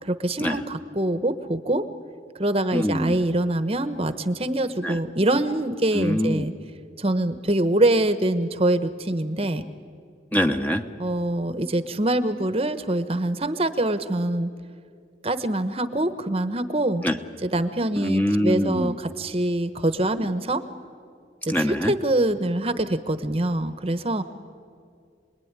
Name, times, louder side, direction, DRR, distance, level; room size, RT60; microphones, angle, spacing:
voice 1, 0.0-1.8 2.4-6.5 7.0-9.6 11.0-14.5 15.2-17.0 17.4-20.6 21.5-24.2, right 1 dB, 35° right, 10 dB, 1.0 m, -24 dB
voice 2, 2.7-3.2 4.8-5.0 5.9-6.5 10.3-10.8 17.0-17.1 18.0-18.9 21.5-21.9, equal, 10° left, 5 dB, 0.9 m, -24 dB
28.0 x 20.5 x 9.7 m, 2.3 s
head